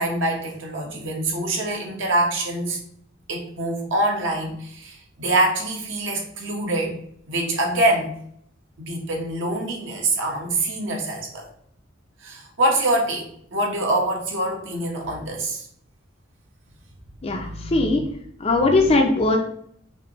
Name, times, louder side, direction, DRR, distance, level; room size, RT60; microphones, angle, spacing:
voice 1, 0.0-2.8 3.3-7.0 7.3-8.1 8.8-11.5 12.2-15.7 17.3-18.1 18.8-18.9, right 1 dB, 65° right, 0 dB, 1.2 m, -25 dB
voice 2, 17.2-18.1 18.4-19.4, left 2 dB, 30° left, 2 dB, 0.5 m, -20 dB
5.9 x 2.7 x 3.0 m, 0.67 s
head